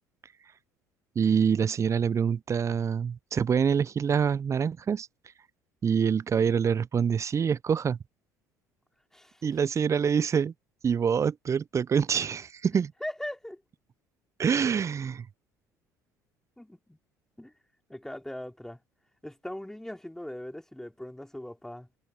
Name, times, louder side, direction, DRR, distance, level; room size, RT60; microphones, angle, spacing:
voice 1, 1.1-5.1 5.8-8.0 9.4-10.5 10.8-12.9 14.4-15.3, right 7 dB, 35° right, 0.9 m, -26 dB
voice 2, 13.0-13.6 16.6-17.0 17.4-17.5 17.9-18.8 19.2-21.9, left 1 dB, 5° left, 4.6 m, -40 dB
figure-of-eight pair, 60°, 9 cm